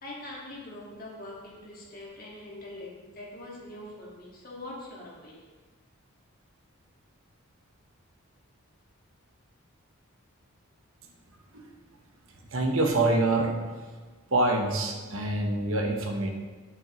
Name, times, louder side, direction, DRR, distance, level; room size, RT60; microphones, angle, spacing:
voice 1, 0.0-5.5, left 1 dB, 40° left, -4 dB, 1.8 m, -43 dB
voice 2, 12.5-13.9 14.3-16.3, right 2 dB, 70° right, 2 dB, 1.0 m, -26 dB
8.5 x 7.4 x 3.1 m, 1.4 s
head